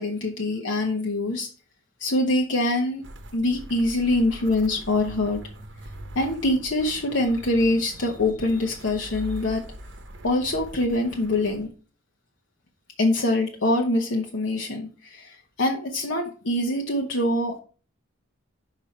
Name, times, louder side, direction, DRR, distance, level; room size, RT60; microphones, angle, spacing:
voice 1, 0.0-1.5 2.0-3.0 3.3-5.4 6.1-9.6 10.2-11.7 13.0-17.6, left 1 dB, 65° left, 1 dB, 1.0 m, -24 dB
sound 1, 3.0-11.7, right 1 dB, 55° right, 0.9 m, -42 dB
5.8 x 5.3 x 4.3 m, 0.37 s
head